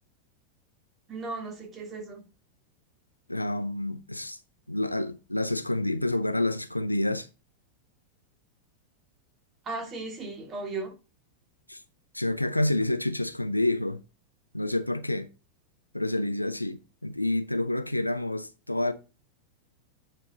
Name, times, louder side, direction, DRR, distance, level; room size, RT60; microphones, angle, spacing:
voice 1, 1.1-2.2 9.6-11.0, right 3 dB, 25° right, 2.7 m, -36 dB
voice 2, 3.3-4.4 4.7-7.3 11.7-11.8 12.1-14.0 14.5-15.3 15.9-18.9, left 1 dB, 85° left, 0.6 m, -28 dB
9.8 x 5.4 x 3.9 m
figure-of-eight pair, 90°, 0 cm